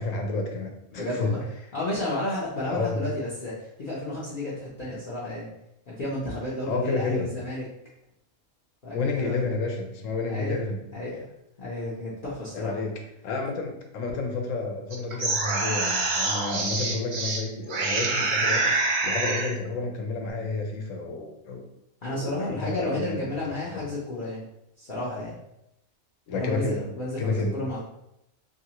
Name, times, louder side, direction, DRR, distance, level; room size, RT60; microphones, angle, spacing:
voice 1, 0.0-1.4 2.7-3.1 6.7-7.3 8.9-10.8 12.5-12.9 13.2-21.7 22.0-23.2 26.3-26.8 27.2-27.5, left 3 dB, 80° left, 2 dB, 1.0 m, -30 dB
voice 2, 0.9-5.5 5.9-7.6 8.8-9.4 10.3-10.6 10.9-11.3 11.6-12.8 22.0-24.5 24.8-25.4 26.3-27.8, left 1 dB, 50° left, -8 dB, 0.7 m, -32 dB
sound 1, 14.9-17.4 17.7-19.5, right 3 dB, 60° right, 0.5 m, -26 dB
2.7 x 2.6 x 2.8 m, 0.83 s
omnidirectional pair, 1.4 m